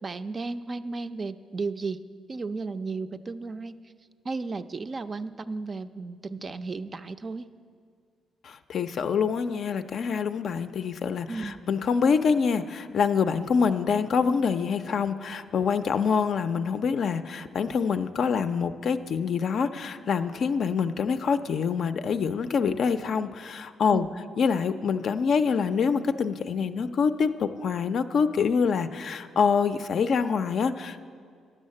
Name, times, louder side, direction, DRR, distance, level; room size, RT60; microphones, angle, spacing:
voice 1, 0.0-2.0 2.3-3.8 4.2-7.5 11.3-11.6 23.9-24.2, right 3 dB, 35° right, 11 dB, 0.4 m, -34 dB
voice 2, 8.4-24.1 24.4-31.0, left 6 dB, 60° left, 10 dB, 0.4 m, -26 dB
10.5 x 6.4 x 7.6 m, 2.2 s
cardioid pair, 90°, 0 cm